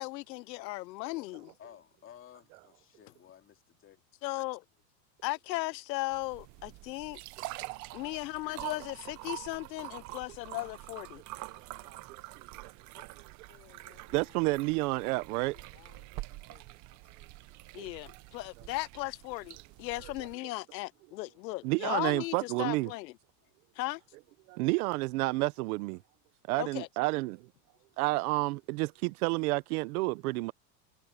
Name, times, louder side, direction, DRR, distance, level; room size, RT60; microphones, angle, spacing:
voice 1, 0.0-1.5 4.2-4.6 5.2-7.2 7.9-11.2 17.7-23.1 23.8-24.0 26.6-26.9, left 20 dB, 85° left, 0.8 m, -37 dB
voice 2, 1.6-4.0 10.1-10.2 11.5-12.0 23.4-23.5 25.3-25.4 27.7-28.0, left 9 dB, 25° left, 2.8 m, -56 dB
sound 1, 6.1-20.3, right 19 dB, 35° right, 0.8 m, -46 dB
voice 3, 11.9-12.2 12.6-12.7 14.1-15.6 17.8-17.9 21.6-22.9 24.5-26.0 26.5-27.5 28.0-30.5, right 23 dB, 60° right, 1.0 m, -30 dB
voice 4, 13.5-14.6 14.9-15.1 15.5-16.7, left 22 dB, 70° left, 4.7 m, -61 dB
supercardioid pair, 150°, 49 cm